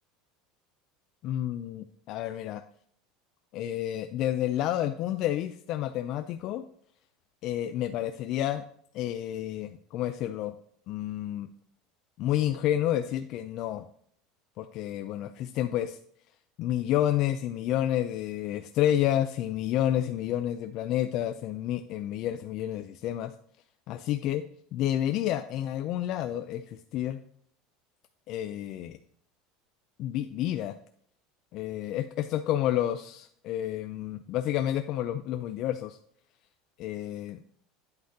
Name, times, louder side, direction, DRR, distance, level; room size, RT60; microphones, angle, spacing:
voice 1, 1.2-2.6 3.5-6.6 7.4-8.6 8.9-10.6 10.9-11.5 12.2-13.8 14.6-16.0 16.6-23.3 23.9-24.4 24.7-27.2 28.3-29.0 30.0-30.8 31.5-36.0 36.8-37.4, left 12 dB, 40° left, 8 dB, 0.3 m, -30 dB
8.7 x 7.9 x 2.8 m, 0.63 s
cardioid pair, 175°, 0 cm